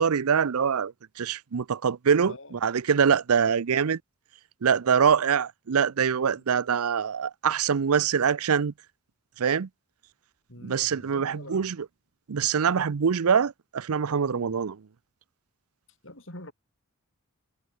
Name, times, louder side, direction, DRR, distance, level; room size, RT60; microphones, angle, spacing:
voice 1, 0.0-4.0 4.6-8.7 9.4-9.7 10.6-11.8 12.3-14.8, right 7 dB, 85° right, 0.6 m, -24 dB
voice 2, 2.3-2.6 10.5-11.7 14.3-14.5 16.0-16.5, left 1 dB, 60° left, 7.3 m, -45 dB
head